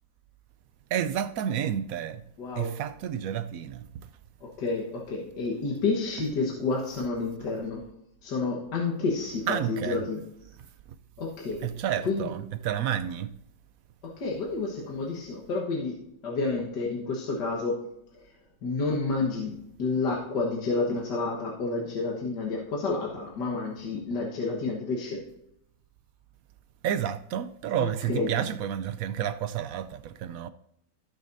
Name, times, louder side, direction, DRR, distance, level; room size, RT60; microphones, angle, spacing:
voice 1, 0.9-2.2 2.6-3.9 9.5-10.0 11.6-13.3 26.8-30.5, right 9 dB, 70° right, 0.8 m, -30 dB
voice 2, 2.4-2.7 4.4-7.8 8.2-10.2 11.2-11.8 12.0-12.3 14.0-16.0 16.2-17.8 18.1-18.3 18.6-19.5 19.8-25.2 27.8-28.3, left 3 dB, 75° left, 2.0 m, -30 dB
16.5 x 6.4 x 2.7 m
omnidirectional pair, 1.8 m